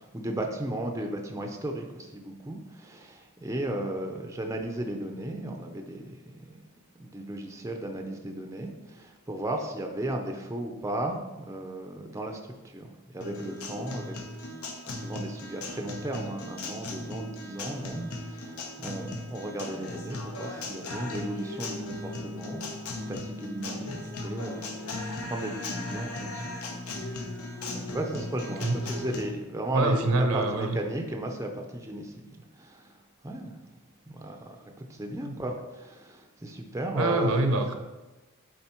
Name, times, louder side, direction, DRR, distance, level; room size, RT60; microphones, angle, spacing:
voice 1, 0.0-6.6 7.0-12.9 13.1-14.5 14.9-22.6 23.1-26.4 27.7-30.0 30.3-33.0 33.2-33.5 34.1-37.6, right 1 dB, 15° right, 3 dB, 0.5 m, -35 dB
Guitar, 13.2-29.2, left 2 dB, 75° left, 1.0 m, -37 dB
voice 2, 14.6-14.9 28.6-28.8 29.7-30.8 35.2-35.4 36.9-37.8, right 2 dB, 70° right, 6 dB, 0.8 m, -26 dB
8.0 x 4.0 x 4.4 m, 1.1 s
head